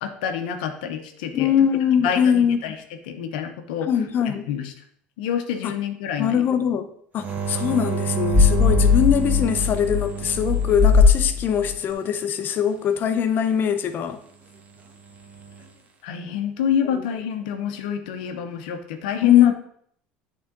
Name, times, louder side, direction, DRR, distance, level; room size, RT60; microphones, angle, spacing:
voice 1, 0.0-1.5 2.0-2.8 3.1-3.9 4.2-4.7 5.2-6.5 7.6-7.7 16.0-19.5, left 9 dB, 85° left, 6 dB, 0.8 m, -27 dB
voice 2, 1.3-2.6 3.8-4.5 5.6-5.7 6.2-6.9 7.1-14.2 16.9-17.0 19.2-19.5, left 8 dB, 50° left, 10 dB, 0.7 m, -22 dB
sound 1, 7.2-11.8 15.1-15.6, right 6 dB, 35° right, 1.2 m, -29 dB
sound 2, 8.3-11.7, left 5 dB, 10° left, 2.9 m, -19 dB
8.6 x 3.8 x 3.8 m, 0.65 s
supercardioid pair, 100°, 5 cm